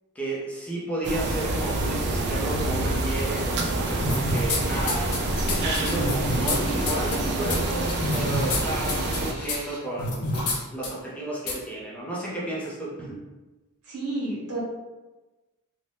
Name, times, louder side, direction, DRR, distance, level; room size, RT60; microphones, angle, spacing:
voice 1, 0.1-5.2 5.5-10.3 10.7-13.2, right 2 dB, 5° left, -6 dB, 0.6 m, -32 dB
sound 1, 1.0-9.3, right 2 dB, 50° right, 0.4 m, -27 dB
sound 2, 2.7-4.0 4.6-9.8 10.3-10.6, left 1 dB, 25° left, 0.9 m, -43 dB
sound 3, 4.0-4.6 4.9-6.6 6.9-7.2 7.5-7.6 7.9-8.6 8.9-9.2 9.5-9.6 10.0-10.6 10.8-10.9 11.5-11.6, left 2 dB, 85° left, 0.6 m, -27 dB
voice 2, 13.9-14.6, right 2 dB, 80° right, -5 dB, 1.1 m, -30 dB
2.6 x 2.2 x 3.3 m, 1.1 s
head